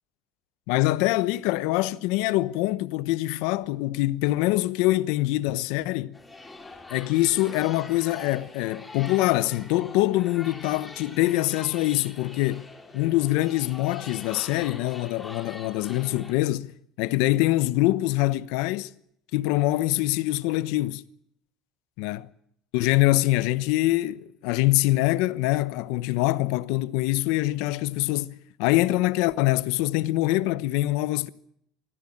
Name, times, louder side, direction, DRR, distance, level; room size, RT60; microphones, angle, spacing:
voice 1, 0.7-6.2 6.9-12.7 12.9-16.7 17.0-18.9 19.3-21.0 22.0-22.3 22.7-31.3, left 17 dB, 75° left, 1.0 m, -24 dB
sound 1, 6.1-16.3, left 2 dB, 10° left, 3.2 m, -44 dB
24.0 x 15.0 x 8.8 m
cardioid pair, 160°, 0 cm